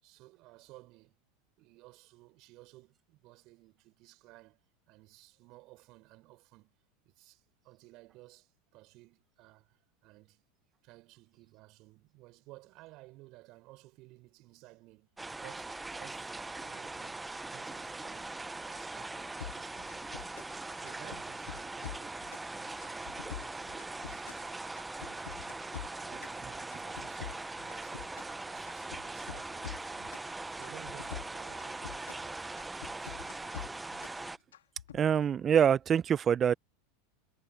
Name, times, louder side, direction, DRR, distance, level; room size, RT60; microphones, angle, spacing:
voice 1, 0.0-1.2 1.6-4.6 4.9-6.8 7.0-10.4 10.8-24.7 25.0-25.3 25.8-28.2 28.4-33.3, right 20 dB, 50° right, 6.8 m, -56 dB
sound 1, 15.2-34.4, right 2 dB, 10° right, 1.0 m, -41 dB
sound 2, 19.4-20.6 20.9-22.5 22.8-24.5 24.8-26.4 26.7-28.4 28.7-30.3 30.6-32.3 32.6-34.2 34.5-35.0, left 10 dB, 80° left, 2.5 m, -45 dB
voice 2, 34.9-36.5, right 8 dB, 30° right, 0.8 m, -25 dB
hypercardioid pair, 90°, 0 cm